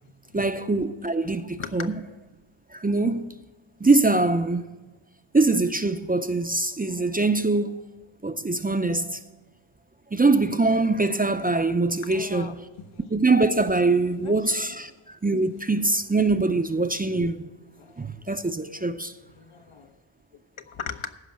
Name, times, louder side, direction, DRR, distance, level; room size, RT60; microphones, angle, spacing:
voice 1, 0.3-2.0 2.7-3.4 3.8-4.7 5.3-7.8 8.2-9.2 10.1-12.7 13.1-17.5 18.0-19.1, right 3 dB, 20° right, 0.4 m, -23 dB
voice 2, 12.0-12.5 12.9-13.0 14.2-14.3 17.8-18.1 19.4-19.9 20.7-21.1, left 7 dB, 80° left, 1.0 m, -37 dB
14.5 x 5.5 x 7.5 m
wide cardioid pair, 100°, 49 cm